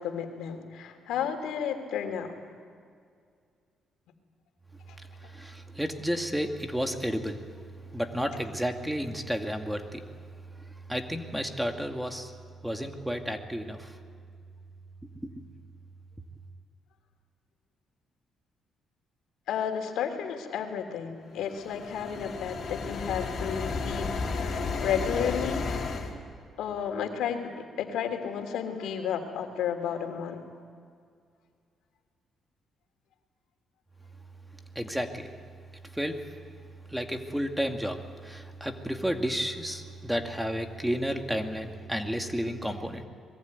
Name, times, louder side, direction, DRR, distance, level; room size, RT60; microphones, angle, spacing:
voice 1, 0.0-2.3 19.5-25.6 26.6-30.4, left 8 dB, 85° left, 5 dB, 3.1 m, -32 dB
voice 2, 5.2-7.4 7.9-10.0 10.9-12.3 12.6-14.0 34.8-35.3 35.9-36.2 36.9-43.1, equal, 5° right, 5 dB, 2.2 m, -32 dB
sound 1, 21.4-26.1, left 4 dB, 50° left, 4.1 m, -32 dB
24.5 x 22.0 x 9.5 m, 2.2 s
cardioid pair, 90°, 0 cm